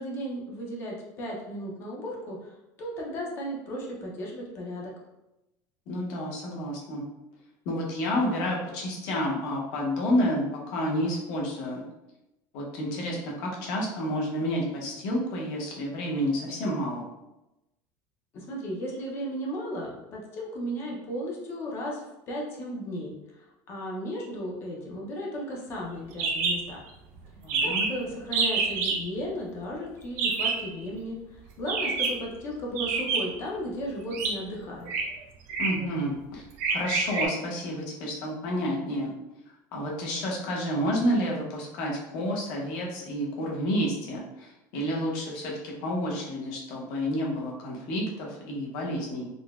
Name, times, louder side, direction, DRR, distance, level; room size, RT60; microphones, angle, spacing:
voice 1, 0.0-4.9 18.3-26.8 27.6-34.9, equal, 30° left, -2 dB, 0.5 m, -35 dB
voice 2, 5.9-7.0 7.6-11.8 12.5-17.1 27.4-27.9 35.6-36.4 36.7-39.1 39.7-49.3, equal, 55° left, -2 dB, 0.8 m, -30 dB
sound 1, 26.2-26.6 26.9-27.0 27.2-27.3 27.5-28.0 28.3-29.0 30.2-30.6 31.6-32.2 32.8-33.4 34.1-34.3 34.8-35.0 35.5-35.8 36.6-37.3, right 4 dB, 85° right, 0.5 m, -27 dB
3.8 x 2.1 x 2.3 m, 0.93 s
cardioid pair, 180°, 8 cm